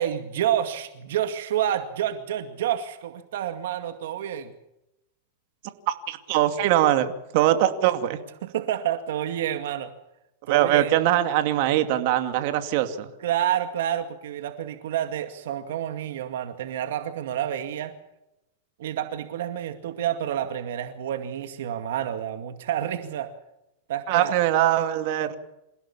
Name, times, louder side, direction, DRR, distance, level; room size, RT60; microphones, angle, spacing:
voice 1, 0.0-4.5 8.4-9.9 10.5-10.9 13.2-17.9 18.8-23.3 23.9-24.4, right 10 dB, 75° right, 8 dB, 2.1 m, -29 dB
voice 2, 6.1-8.2 10.5-13.1 24.1-25.3, right 12 dB, 55° right, 8 dB, 2.4 m, -22 dB
28.0 x 16.5 x 7.3 m, 0.89 s
supercardioid pair, 145°, 0 cm